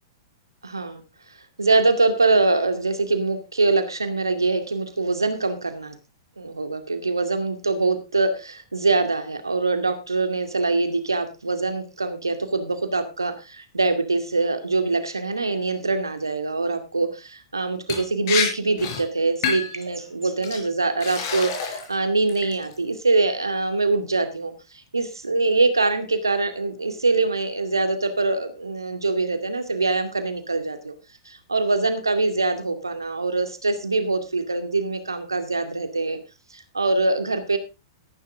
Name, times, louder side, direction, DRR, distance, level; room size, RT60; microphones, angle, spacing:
voice 1, 0.6-1.0 1.6-6.0 6.4-24.5 24.9-30.9 31.3-36.2 36.5-37.6, right 3 dB, 80° right, 8 dB, 2.3 m, -23 dB
Liquid, 17.9-18.0 18.3-18.5 18.8-19.0 19.4-19.8 20.4-20.6 21.0-21.9 22.3-22.7, left 6 dB, 45° left, 5.5 m, -27 dB
14.0 x 11.5 x 3.8 m, 0.28 s
figure-of-eight pair, 100°, 2 cm